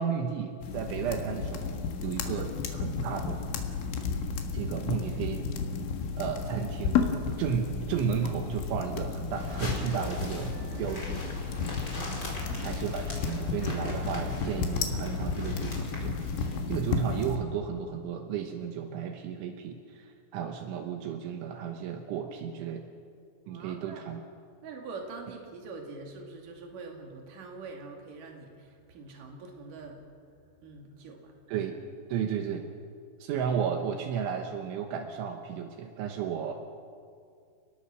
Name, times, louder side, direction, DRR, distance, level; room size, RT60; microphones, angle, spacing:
voice 1, 0.0-3.4 4.5-5.4 6.2-7.0 7.4-11.2 12.6-16.2 16.7-22.8 23.5-24.2 31.5-31.8 32.1-32.7 33.2-36.5, right 7 dB, 75° right, 4 dB, 3.5 m, -33 dB
sound 1, 0.6-17.4, left 5 dB, 75° left, 4.1 m, -33 dB
sound 2, 9.3-16.6, left 2 dB, 20° left, 4.8 m, -42 dB
sound 3, 9.5-14.7, right 1 dB, 10° right, 3.0 m, -45 dB
voice 2, 12.2-12.8 23.5-24.0 24.6-30.1 30.6-31.3, right 3 dB, 50° right, 1 dB, 3.8 m, -44 dB
30.0 x 20.0 x 6.2 m, 2.3 s
omnidirectional pair, 5.6 m